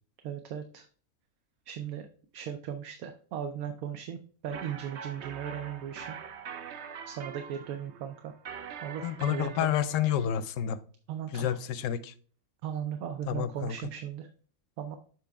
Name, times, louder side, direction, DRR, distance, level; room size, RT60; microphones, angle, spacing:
voice 1, 0.2-0.9 1.7-2.1 2.3-6.2 7.1-8.3 8.8-9.7 11.1-11.6 12.6-14.3 14.8-15.0, right 9 dB, 80° right, 6 dB, 1.1 m, -37 dB
sound 1, 4.5-10.3, right 7 dB, 60° right, 0.8 m, -43 dB
voice 2, 9.0-10.8 11.3-12.1 13.3-13.7, left 10 dB, 70° left, 13 dB, 0.9 m, -29 dB
7.6 x 3.8 x 3.4 m, 0.43 s
omnidirectional pair, 1.5 m